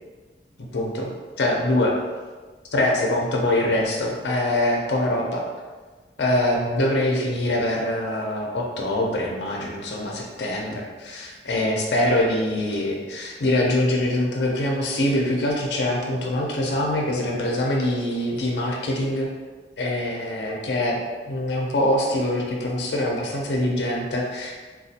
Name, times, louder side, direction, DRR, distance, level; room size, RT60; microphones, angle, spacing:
voice 1, 0.7-2.0 2.7-5.4 6.2-19.3 19.8-21.0 21.3-24.5, left 1 dB, 70° left, -1 dB, 0.5 m, -24 dB
4.1 x 2.3 x 2.7 m, 1.4 s
head